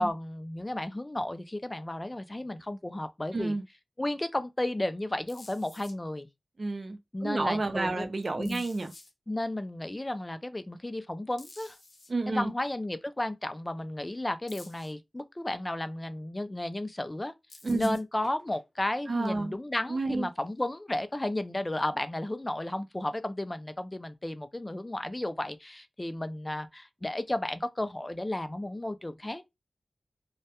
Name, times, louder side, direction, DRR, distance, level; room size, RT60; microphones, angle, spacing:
voice 1, 0.0-3.6 4.0-6.3 7.1-8.1 8.4-8.6 9.3-11.8 12.3-17.3 17.7-29.4, left 1 dB, 20° left, 0.3 m, -33 dB
voice 2, 3.3-3.6 6.6-8.9 12.1-12.5 17.6-18.0 19.1-19.6 19.9-20.3, right 3 dB, 50° right, 0.4 m, -30 dB
magnet contact noises, 5.3-5.9 8.4-9.1 11.4-12.1 14.5-14.9 17.5-18.6 21.1-21.2, left 2 dB, 65° left, 0.7 m, -51 dB
2.2 x 2.1 x 2.8 m
wide cardioid pair, 75°, 0 cm